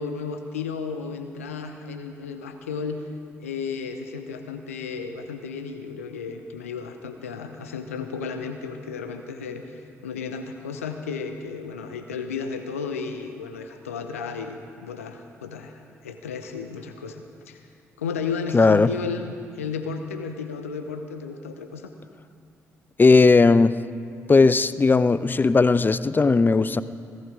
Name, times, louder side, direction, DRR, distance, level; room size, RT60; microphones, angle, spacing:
voice 1, 0.0-3.0 3.4-17.6 18.0-21.9, left 5 dB, 85° left, 7 dB, 0.7 m, -33 dB
voice 2, 18.5-18.9 23.0-23.7 24.3-26.8, left 3 dB, 25° left, 15 dB, 0.5 m, -17 dB
16.5 x 15.0 x 5.0 m, 2.3 s
figure-of-eight pair, 40°, 7 cm